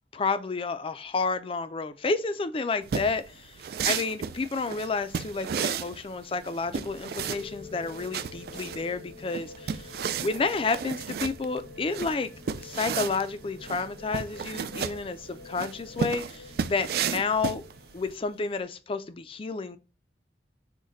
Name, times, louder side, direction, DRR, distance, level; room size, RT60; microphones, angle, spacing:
voice 1, 0.1-3.6 3.9-12.3 12.6-17.6 17.9-19.8, left 4 dB, 30° left, 0.4 m, -30 dB
sound 1, 2.8-18.1, right 7 dB, 60° right, 0.3 m, -33 dB
sound 2, 6.7-18.6, left 3 dB, 85° left, 0.8 m, -48 dB
6.2 x 2.2 x 3.9 m
head